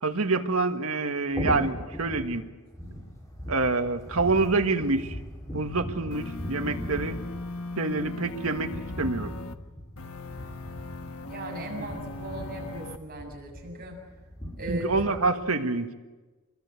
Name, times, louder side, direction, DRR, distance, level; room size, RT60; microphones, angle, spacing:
voice 1, 0.0-2.4 3.5-5.1 5.5-7.2 7.8-9.3 14.7-15.9, right 3 dB, 75° right, 6 dB, 1.8 m, -27 dB
sound 1, 1.3-15.2, equal, 15° left, 5.7 m, -39 dB
sound 2, 6.1-9.6 10.0-13.0, left 3 dB, 75° left, 1.3 m, -39 dB
voice 2, 11.3-14.0 14.6-14.9, right 1 dB, 45° right, 0 dB, 7.0 m, -37 dB
26.5 x 22.0 x 8.3 m, 1.3 s
head